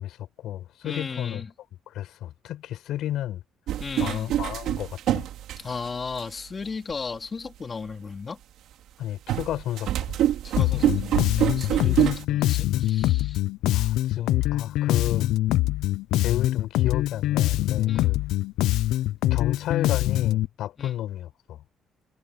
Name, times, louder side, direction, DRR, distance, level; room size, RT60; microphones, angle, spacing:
voice 1, 0.0-1.4 1.9-3.4 4.0-5.3 9.0-10.2 13.7-15.3 16.2-18.2 19.3-21.6, left 12 dB, 65° left, 6.5 m, -32 dB
voice 2, 0.8-1.5 3.8-4.3 5.6-8.4 10.4-13.4 17.9-18.1 20.8-20.9, left 5 dB, 25° left, 3.6 m, -35 dB
sound 1, 3.7-6.2 6.9-7.0 9.3-12.2, right 12 dB, 65° right, 3.2 m, -25 dB
Bass guitar, 10.6-20.5, left 15 dB, 85° left, 0.5 m, -24 dB
cardioid pair, 175°, 0 cm